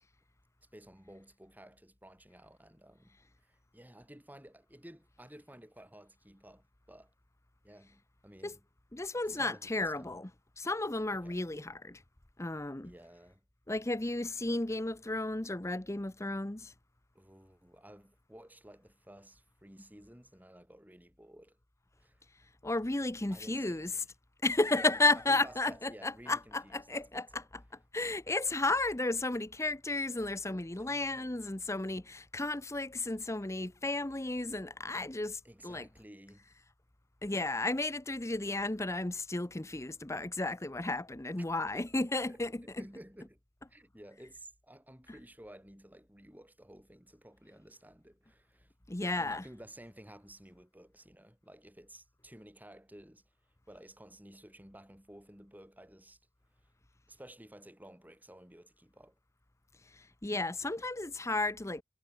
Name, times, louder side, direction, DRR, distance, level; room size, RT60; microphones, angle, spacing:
voice 1, 0.7-7.1 7.6-8.6 9.3-10.2 11.1-11.4 12.8-13.4 17.1-21.6 22.0-22.2 23.3-24.1 24.7-25.0 25.3-27.5 30.7-31.4 35.4-36.6 41.7-42.0 42.3-43.4 43.7-48.7 49.1-53.2 53.7-56.2 56.6-56.7 57.1-59.2, right 1 dB, 10° right, 7.1 m, -54 dB
voice 2, 8.9-10.3 10.6-12.0 12.4-12.9 13.7-16.7 22.6-24.0 24.4-27.6 27.9-35.9 37.2-42.9 45.1-45.2 48.9-49.4 59.9-61.8, left 2 dB, 15° left, 0.8 m, -33 dB
head